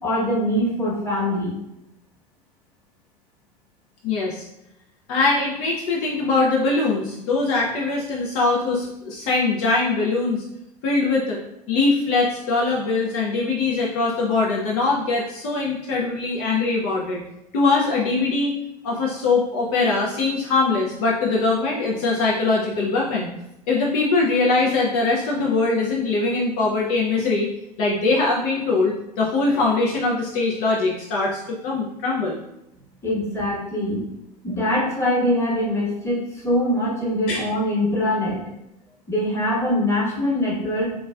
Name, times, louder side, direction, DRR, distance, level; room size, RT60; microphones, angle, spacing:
voice 1, 0.0-1.5 33.0-34.1 34.4-38.4 39.1-40.9, left 1 dB, 15° left, -5 dB, 1.1 m, -23 dB
voice 2, 4.0-4.5 5.1-10.4 10.8-11.4 11.7-17.2 17.5-18.6 18.8-23.3 23.7-27.5 27.8-32.4 37.3-37.5, left 3 dB, 60° left, -3 dB, 0.5 m, -22 dB
2.9 x 2.3 x 2.3 m, 0.87 s
hypercardioid pair, 80°, 21 cm